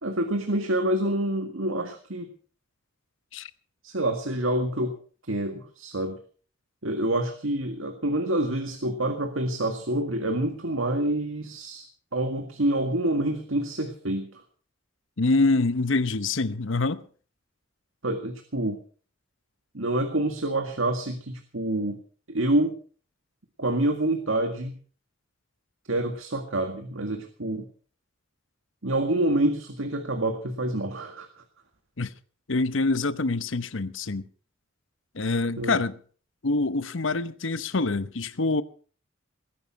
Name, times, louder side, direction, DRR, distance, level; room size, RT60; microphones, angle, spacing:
voice 1, 0.0-2.3 3.8-5.0 5.3-6.2 6.8-11.9 12.1-14.4 18.0-18.8 19.7-22.0 22.3-22.7 23.6-24.8 25.9-27.7 28.8-31.3 35.6-35.8, right 1 dB, 75° right, 1.9 m, -27 dB
voice 2, 15.2-17.0 32.0-32.1 32.5-34.3 35.1-36.0 36.4-38.6, left 3 dB, 65° left, 0.9 m, -25 dB
19.5 x 11.0 x 5.7 m
head